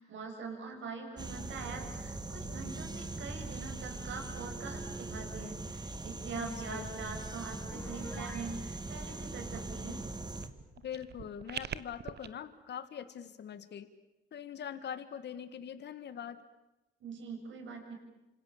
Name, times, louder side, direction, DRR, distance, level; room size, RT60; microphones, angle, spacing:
voice 1, 0.0-10.0 17.0-17.9, right 4 dB, 70° right, 3 dB, 7.2 m, -43 dB
sound 1, 1.2-10.5, right 2 dB, 20° right, 2.6 m, -41 dB
voice 2, 6.3-6.9 10.8-13.9 14.3-16.4, left 8 dB, 60° left, 11 dB, 1.7 m, -43 dB
Piano, 7.7-8.5, left 2 dB, 10° left, 4.5 m, -47 dB
sound 2, 10.3-12.3, right 9 dB, 55° right, 1.2 m, -43 dB
29.5 x 26.5 x 7.2 m, 1.0 s
cardioid pair, 90°, 20 cm